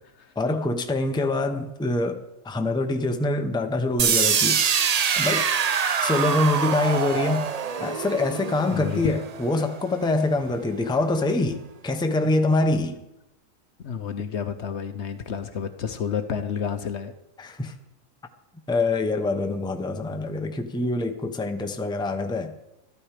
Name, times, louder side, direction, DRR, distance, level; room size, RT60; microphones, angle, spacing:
voice 1, 0.4-2.2 2.4-4.6 5.1-5.5 6.0-7.5 7.8-13.0 17.4-17.7 18.7-22.5, left 2 dB, 5° left, 6 dB, 0.7 m, -25 dB
sound 1, 4.0-9.9, right 7 dB, 60° right, 0.4 m, -25 dB
voice 2, 8.7-9.2 13.8-17.1, left 7 dB, 60° left, 9 dB, 1.0 m, -30 dB
14.0 x 12.5 x 4.9 m, 0.92 s
omnidirectional pair, 1.4 m